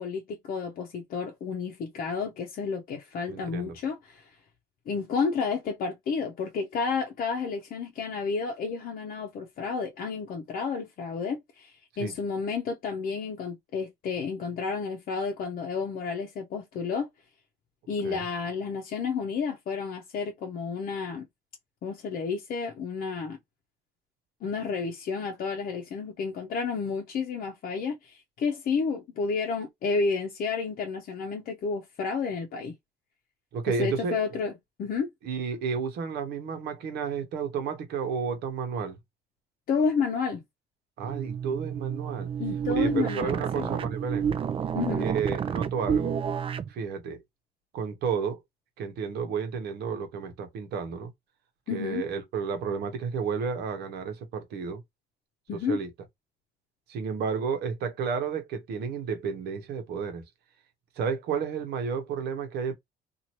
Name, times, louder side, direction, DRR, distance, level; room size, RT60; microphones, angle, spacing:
voice 1, 0.0-4.3 4.9-17.1 17.9-21.3 21.8-23.4 24.4-32.7 33.7-34.5 34.8-35.1 39.7-40.4 42.4-43.7 44.7-45.1 51.7-52.0 55.5-55.8, left 5 dB, 55° left, 0.7 m, -31 dB
voice 2, 3.3-3.8 12.0-12.1 18.0-18.2 33.5-34.2 35.2-39.0 41.0-42.3 42.7-44.3 45.0-46.2 46.7-47.2 47.7-48.4 48.8-51.1 51.7-54.8 55.7-55.9 56.9-60.2 61.0-62.7, right 6 dB, 75° right, 1.0 m, -31 dB
sound 1, 41.0-46.7, right 7 dB, 35° right, 0.4 m, -30 dB
2.7 x 2.5 x 3.0 m
cardioid pair, 110°, 17 cm